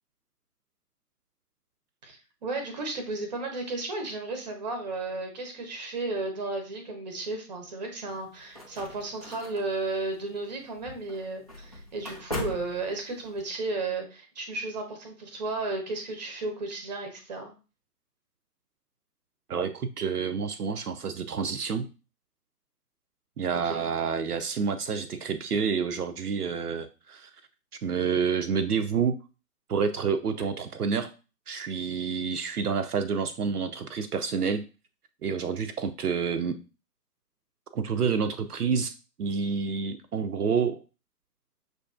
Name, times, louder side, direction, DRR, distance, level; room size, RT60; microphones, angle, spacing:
voice 1, 2.0-17.5 23.6-23.8, right 3 dB, 25° right, 5 dB, 0.7 m, -34 dB
sound 1, 8.1-13.4, left 1 dB, 25° left, 0.4 m, -41 dB
voice 2, 19.5-21.9 23.4-27.3 27.8-29.2 29.7-31.1 31.5-34.6 35.2-36.6 37.7-40.8, right 6 dB, 70° right, 8 dB, 0.6 m, -28 dB
6.2 x 2.6 x 2.3 m, 0.33 s
figure-of-eight pair, 130°, 48 cm